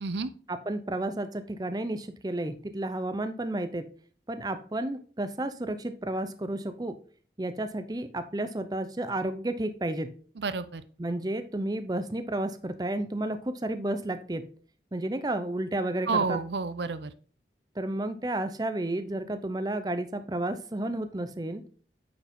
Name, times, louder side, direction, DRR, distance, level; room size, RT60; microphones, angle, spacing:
voice 1, 0.5-3.9 4.3-7.0 7.4-10.1 11.0-14.4 14.9-16.4 17.8-21.6, right 1 dB, 20° right, 10 dB, 0.6 m, -32 dB
voice 2, 10.4-10.8 16.1-17.1, right 4 dB, 75° right, 13 dB, 0.6 m, -29 dB
9.0 x 4.9 x 3.6 m, 0.43 s
head